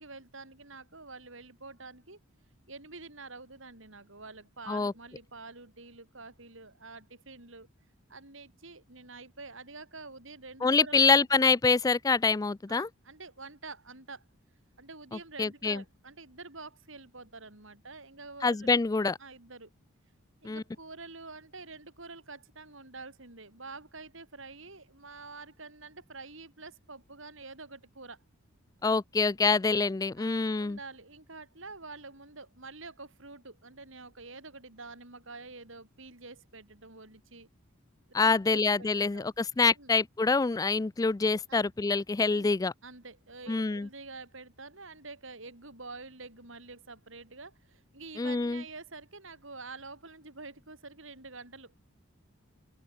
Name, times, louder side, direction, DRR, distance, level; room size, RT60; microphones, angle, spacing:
voice 1, 0.0-2.2 2.7-7.7 8.1-11.3 12.7-14.2 14.8-18.7 19.2-19.7 20.4-28.2 30.2-37.5 38.2-39.3 39.8-39.9 41.5-41.7 42.3-42.5 42.8-51.7, right 3 dB, 65° right, 5.0 m, -47 dB
voice 2, 10.6-12.9 15.4-15.8 18.4-19.2 20.4-20.6 28.8-30.8 38.1-42.7 43.5-43.9 48.2-48.6, left 4 dB, 15° left, 0.3 m, -26 dB
open air
head